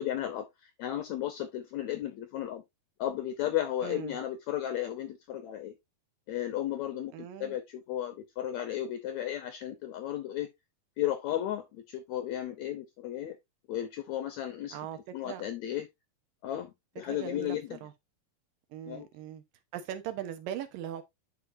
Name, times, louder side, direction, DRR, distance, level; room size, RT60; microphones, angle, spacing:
voice 1, 0.0-2.6 3.0-5.7 6.3-10.5 11.0-13.4 13.7-15.9 16.4-17.9 18.9-19.1, left 12 dB, 80° left, 1.7 m, -34 dB
voice 2, 3.8-4.2 7.1-7.6 14.7-15.0 15.2-15.4 17.0-17.6 17.8-17.9 18.7-19.4 19.7-21.0, right 10 dB, 75° right, 2.6 m, -39 dB
10.0 x 4.7 x 2.6 m
omnidirectional pair, 4.2 m